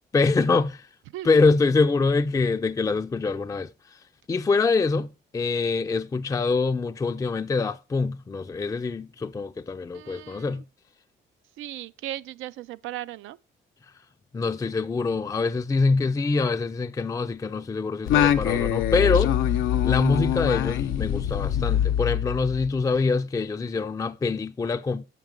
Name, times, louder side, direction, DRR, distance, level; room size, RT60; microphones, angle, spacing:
voice 1, 0.1-0.8 1.2-3.7 4.3-5.1 5.3-10.6 14.3-19.3 19.8-25.0, left 4 dB, 15° left, 0.4 m, -24 dB
voice 2, 9.9-10.6 11.6-13.4, right 14 dB, 90° right, 0.4 m, -37 dB
Singing, 18.1-22.8, left 10 dB, 85° left, 0.6 m, -24 dB
7.3 x 5.9 x 5.2 m
cardioid pair, 90°, 20 cm